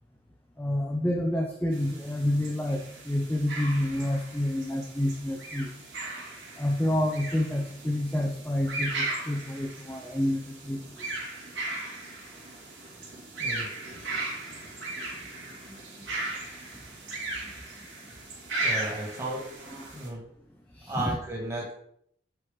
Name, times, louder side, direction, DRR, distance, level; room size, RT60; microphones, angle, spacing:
voice 1, 0.6-5.7 6.6-11.1 14.0-14.1 15.7-16.1 17.0-17.1 17.4-17.5 20.7-21.2, left 1 dB, 10° left, 0 dB, 0.5 m, -29 dB
sound 1, 1.7-20.1, right 2 dB, 70° right, 2.1 m, -37 dB
voice 2, 18.6-19.4 19.9-20.2 20.9-21.7, right 1 dB, 15° right, -4 dB, 2.4 m, -33 dB
7.6 x 4.8 x 3.6 m, 0.68 s
head